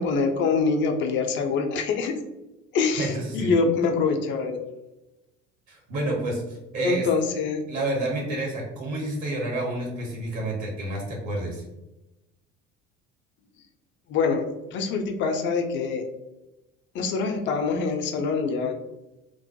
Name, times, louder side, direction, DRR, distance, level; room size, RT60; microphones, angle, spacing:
voice 1, 0.0-2.1 2.7-4.6 6.8-7.6 14.1-16.0 16.9-18.7, left 4 dB, 35° left, 5 dB, 0.4 m, -25 dB
voice 2, 3.0-3.6 5.7-7.1 7.7-11.6, right 1 dB, 50° right, -1 dB, 0.9 m, -29 dB
2.2 x 2.0 x 2.7 m, 0.99 s
figure-of-eight pair, 60°, 37 cm